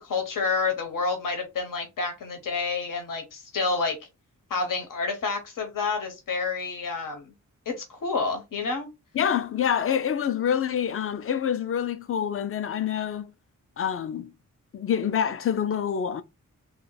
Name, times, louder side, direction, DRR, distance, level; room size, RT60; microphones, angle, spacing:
voice 1, 0.0-4.0 4.5-7.3 7.7-8.9, left 4 dB, 85° left, 1.0 m, -29 dB
voice 2, 9.1-13.3 13.8-14.3 14.7-16.2, left 8 dB, 45° left, 0.4 m, -26 dB
3.4 x 2.3 x 3.8 m
wide cardioid pair, 165°, 32 cm